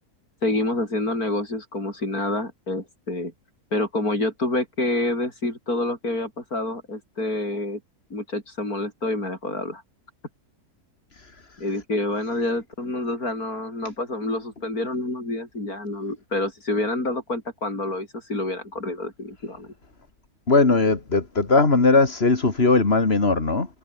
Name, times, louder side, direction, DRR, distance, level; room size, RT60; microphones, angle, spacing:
voice 1, 0.4-3.3 3.7-7.8 8.1-9.8 11.6-19.7, left 2 dB, 70° left, 7.6 m, -27 dB
voice 2, 20.5-23.7, left 3 dB, 40° left, 2.8 m, -19 dB
omnidirectional pair, 1.6 m